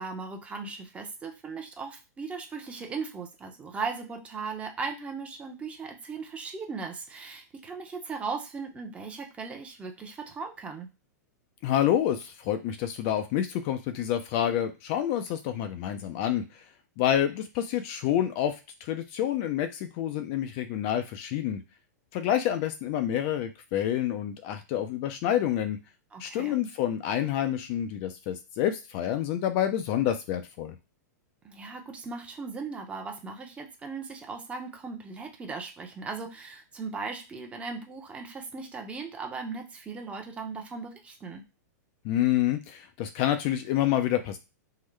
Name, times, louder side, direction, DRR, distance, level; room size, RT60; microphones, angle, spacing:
voice 1, 0.0-10.9 26.1-26.6 31.4-41.4, right 4 dB, 15° right, 3 dB, 0.6 m, -38 dB
voice 2, 11.6-16.4 17.0-18.6 18.8-21.6 22.1-25.8 26.2-30.7 42.0-44.4, left 11 dB, 40° left, 8 dB, 0.4 m, -28 dB
3.6 x 2.1 x 3.2 m, 0.29 s
hypercardioid pair, 145°, 9 cm